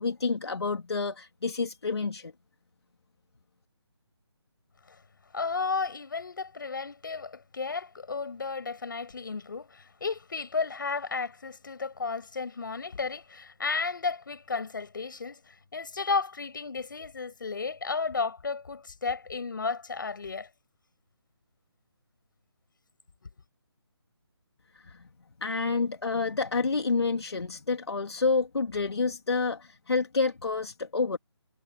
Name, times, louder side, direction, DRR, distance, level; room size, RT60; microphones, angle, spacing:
voice 1, 0.0-2.3 24.7-25.0 25.4-31.2, left 4 dB, 70° left, 2.9 m, -29 dB
voice 2, 5.3-20.5, left 4 dB, 50° left, 7.9 m, -33 dB
hypercardioid pair, 175°, 14 cm